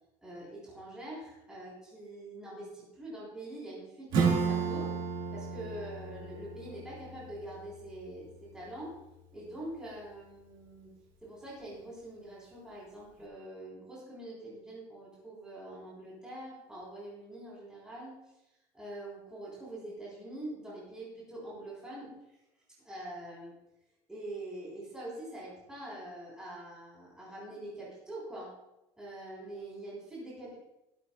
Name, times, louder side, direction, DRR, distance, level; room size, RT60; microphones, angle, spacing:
voice 1, 0.2-5.0 5.3-9.0 9.3-10.9 11.2-18.2 18.7-22.1 22.8-23.6 24.1-28.5 29.0-30.6, right 1 dB, 5° right, -7 dB, 3.8 m, -44 dB
Acoustic guitar / Strum, 4.1-9.3, right 5 dB, 45° right, 2.0 m, -34 dB
14.5 x 13.0 x 2.3 m, 0.90 s
cardioid pair, 175°, 12 cm